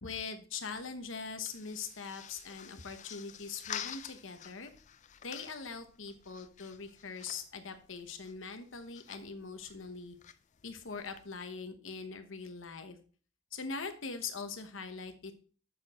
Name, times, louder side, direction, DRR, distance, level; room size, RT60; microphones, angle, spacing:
voice 1, 0.0-4.7 5.2-10.2 10.6-13.0 13.5-15.3, left 5 dB, 75° left, 8 dB, 1.0 m, -42 dB
sound 1, 0.5-11.4, left 9 dB, 40° left, 0.4 m, -49 dB
6.9 x 6.8 x 4.2 m, 0.42 s
head